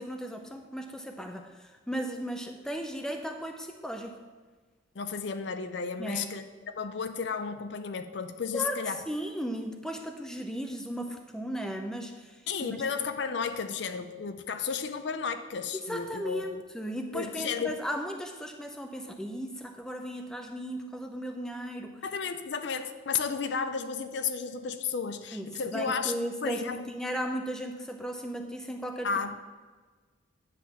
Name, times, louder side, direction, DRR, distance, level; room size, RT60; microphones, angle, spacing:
voice 1, 0.0-4.2 6.0-6.3 8.5-12.8 15.9-22.0 25.3-29.1, equal, 5° left, 4 dB, 0.5 m, -36 dB
voice 2, 4.9-9.0 12.5-16.6 17.1-17.7 22.0-26.1 26.4-26.8 29.0-29.4, left 6 dB, 55° left, 9 dB, 0.5 m, -33 dB
10.0 x 3.7 x 7.2 m, 1.4 s
head